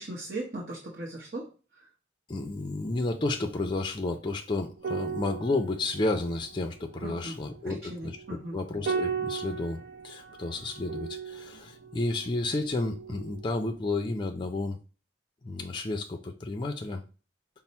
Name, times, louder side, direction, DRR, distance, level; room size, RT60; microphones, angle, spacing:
voice 1, 0.0-1.5 7.0-7.4 7.7-8.6, right 2 dB, 55° right, -2 dB, 0.9 m, -38 dB
voice 2, 2.3-14.8 15.4-17.0, left 2 dB, 25° left, 5 dB, 0.4 m, -31 dB
sound 1, 4.8-13.5 13.8-14.0, right 6 dB, 75° right, 0.5 m, -37 dB
5.7 x 2.0 x 4.1 m, 0.36 s
head